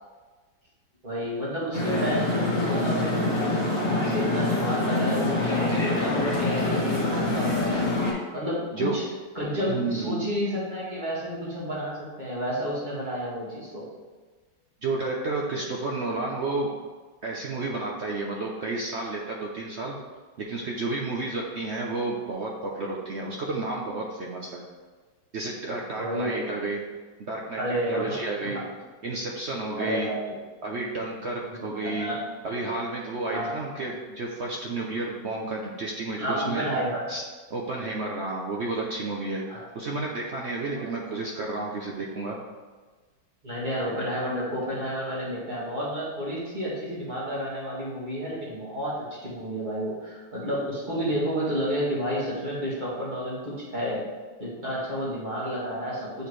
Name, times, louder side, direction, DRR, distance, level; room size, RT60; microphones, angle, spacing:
voice 1, 1.0-7.8 8.3-9.0 9.4-13.9 26.0-26.4 27.6-28.6 29.8-30.3 31.4-32.2 33.3-33.6 36.2-37.1 39.5-39.6 40.7-40.8 43.4-54.1 54.4-56.3, equal, 25° right, -7 dB, 1.9 m, -30 dB
sound 1, 1.7-8.1, left 2 dB, 40° left, 2.0 m, -25 dB
voice 2, 9.7-10.1 14.8-16.7 17.2-20.0 20.5-24.6 25.3-26.8 27.2-27.6 27.9-28.6 29.0-30.1 30.6-32.1 32.4-36.6 37.1-37.2 37.5-39.4 39.7-42.4, right 3 dB, 60° right, -2 dB, 0.7 m, -31 dB
8.0 x 4.3 x 3.2 m, 1.4 s
omnidirectional pair, 1.9 m